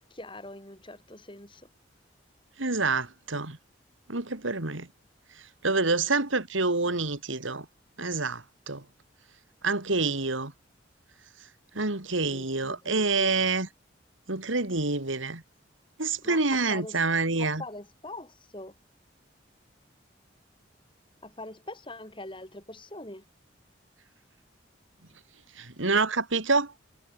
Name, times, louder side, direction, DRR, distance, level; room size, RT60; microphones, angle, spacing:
voice 1, 0.1-1.7 11.7-11.8 12.3-13.4 16.2-17.0 17.4-18.8 21.2-23.2, left 2 dB, 25° left, 7.5 m, -43 dB
voice 2, 2.6-3.6 4.1-4.9 5.6-7.7 8.0-8.8 9.6-10.5 11.7-13.7 14.3-15.4 16.0-17.6 25.6-26.7, right 3 dB, 90° right, 2.9 m, -27 dB
head